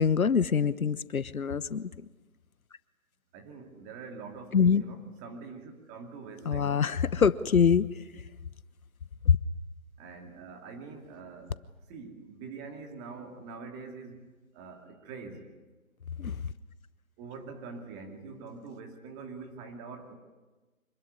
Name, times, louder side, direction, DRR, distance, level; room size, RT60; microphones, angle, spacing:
voice 1, 0.0-1.9 4.5-4.8 6.5-7.8 9.3-9.4 16.2-16.3, left 6 dB, 75° left, 16 dB, 1.1 m, -24 dB
voice 2, 3.3-6.9 10.0-11.6 11.9-14.3 14.5-15.5 17.2-20.2, right 4 dB, 15° right, 4 dB, 2.5 m, -44 dB
26.0 x 20.5 x 9.9 m, 1.2 s
figure-of-eight pair, 155°, 43 cm